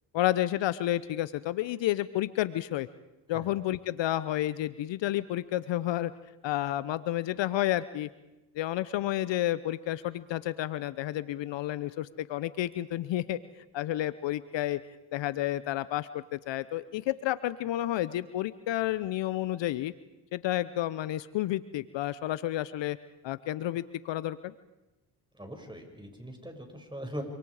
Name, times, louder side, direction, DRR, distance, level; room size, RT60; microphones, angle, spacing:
voice 1, 0.1-2.9 3.3-6.1 6.4-8.1 8.5-13.4 13.7-14.8 15.1-19.9 20.3-23.0 23.2-24.5, left 14 dB, 60° left, 16 dB, 0.9 m, -30 dB
voice 2, 25.3-27.2, equal, 10° right, 4 dB, 6.5 m, -41 dB
27.0 x 26.0 x 5.0 m, 1.0 s
supercardioid pair, 60°, 48 cm